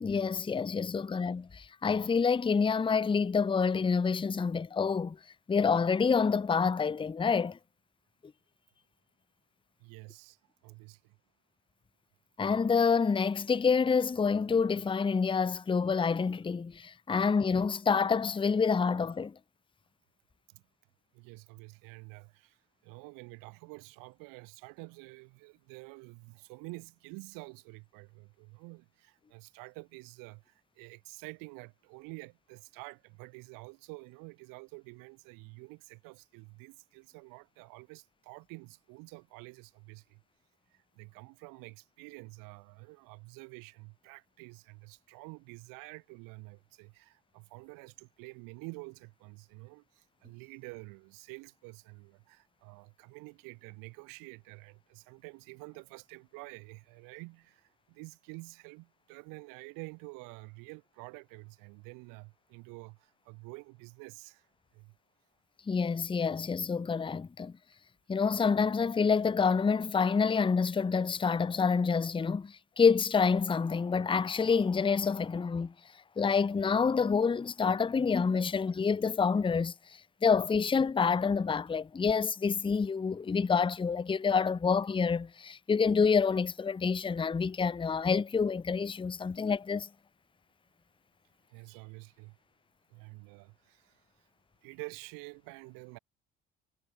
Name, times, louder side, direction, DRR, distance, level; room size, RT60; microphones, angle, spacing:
voice 1, 0.0-5.2 5.5-7.6 12.4-19.3 65.7-67.5 68.1-75.7 76.2-79.7 80.2-89.9, left 5 dB, 15° left, 0.6 m, -27 dB
voice 2, 9.8-10.4 10.6-11.2 20.5-20.6 21.1-22.6 22.8-40.2 41.0-64.4 64.7-64.9 91.5-92.4 92.9-94.0 94.6-96.0, right 28 dB, 70° right, 7.2 m, -49 dB
hypercardioid pair, 60°, 34 cm